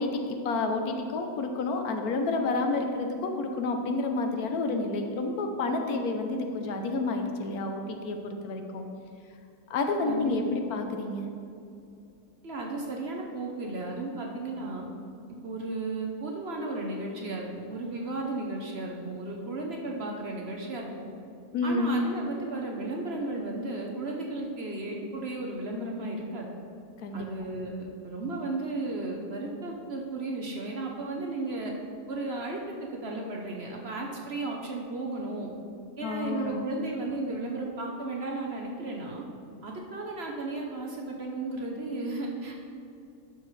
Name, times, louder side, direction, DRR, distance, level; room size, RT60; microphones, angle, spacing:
voice 1, 0.0-8.8 9.7-11.3 21.5-22.0 27.0-27.3 36.0-36.7, left 3 dB, 75° left, 4 dB, 1.2 m, -29 dB
voice 2, 10.0-10.6 12.4-14.9 15.4-21.1 21.6-26.5 27.1-31.7 32.1-35.5 36.0-39.2 39.6-42.6, right 2 dB, 50° right, 0 dB, 0.9 m, -34 dB
11.0 x 6.4 x 3.2 m, 2.6 s
omnidirectional pair, 1.6 m